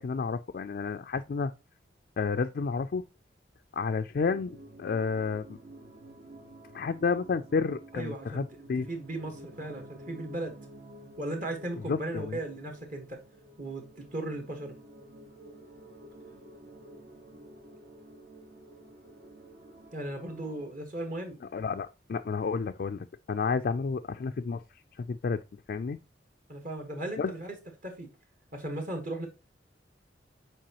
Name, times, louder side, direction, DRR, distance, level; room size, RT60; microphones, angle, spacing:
voice 1, 0.0-1.5 2.2-3.0 3.7-5.6 6.7-8.9 11.9-12.4 21.5-25.4 25.7-26.0 27.2-27.3, left 5 dB, 55° left, 0.3 m, -31 dB
sound 1, 4.2-20.7, right 1 dB, 60° right, 1.3 m, -51 dB
voice 2, 7.9-8.4 8.9-10.5 11.2-13.2 13.6-14.8 19.9-21.4 26.5-27.5 27.8-28.1 28.5-29.3, right 1 dB, 45° right, 1.5 m, -36 dB
7.5 x 4.6 x 2.9 m
head